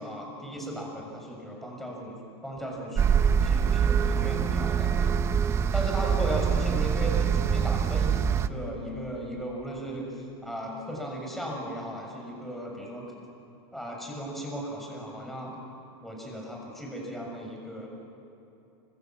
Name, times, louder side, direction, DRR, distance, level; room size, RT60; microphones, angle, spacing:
voice 1, 0.0-5.2 5.7-13.1 13.7-15.5 16.0-17.9, equal, ahead, -1 dB, 6.7 m, -36 dB
sound 1, 2.9-8.5, right 7 dB, 20° right, 0.7 m, -24 dB
29.0 x 26.5 x 7.6 m, 2.9 s
supercardioid pair, 150°, 14 cm